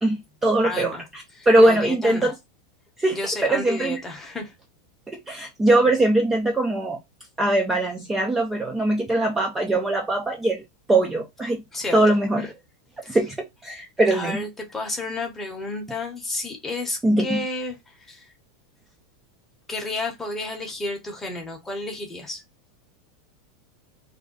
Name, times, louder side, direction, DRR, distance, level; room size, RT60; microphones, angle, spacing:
voice 1, 0.0-2.3 3.0-4.0 5.1-7.0 7.4-10.6 10.9-11.6 11.9-12.5 13.1-14.4 17.0-17.4, right 1 dB, 10° right, 0.4 m, -21 dB
voice 2, 0.6-1.1 1.3-2.3 3.1-4.5 11.7-12.5 13.0-13.2 14.1-18.3 19.7-22.4, left 2 dB, 10° left, 0.8 m, -31 dB
2.5 x 2.2 x 3.8 m
supercardioid pair, 150°, 2 cm